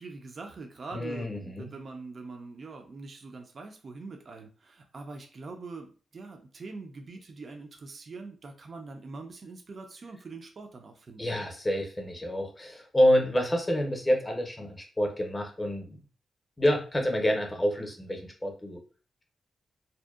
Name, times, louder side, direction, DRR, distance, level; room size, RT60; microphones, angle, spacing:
voice 1, 0.0-11.3, right 3 dB, 50° right, 4 dB, 0.4 m, -43 dB
voice 2, 0.9-1.7 11.2-16.0 16.6-18.8, equal, 20° left, 2 dB, 0.6 m, -27 dB
2.6 x 2.1 x 2.3 m, 0.38 s
cardioid pair, 95°, 0 cm